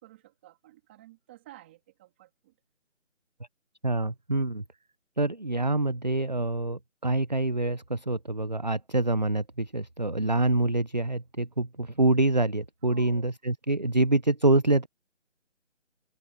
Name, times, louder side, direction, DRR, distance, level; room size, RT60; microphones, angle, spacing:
voice 1, 0.0-2.5 12.9-13.3, right 15 dB, 10° right, 2.7 m, -52 dB
voice 2, 3.8-4.6 5.2-14.9, right 2 dB, 35° right, 0.6 m, -26 dB
figure-of-eight pair, 175°, 37 cm